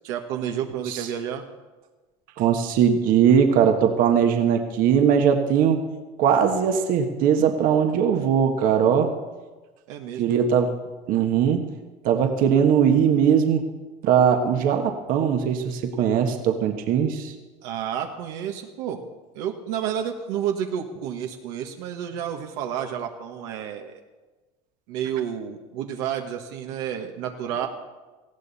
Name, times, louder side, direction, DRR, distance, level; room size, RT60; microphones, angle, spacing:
voice 1, 0.0-1.4 9.9-10.4 17.6-19.0 19.3-24.0 24.9-27.7, right 9 dB, 75° right, 3 dB, 1.5 m, -30 dB
voice 2, 2.4-5.8 6.2-9.1 10.2-10.7 11.1-11.7 12.0-13.6 14.0-17.3, right 8 dB, 60° right, 5 dB, 1.5 m, -20 dB
19.0 x 15.0 x 4.2 m, 1.2 s
supercardioid pair, 110°, 16 cm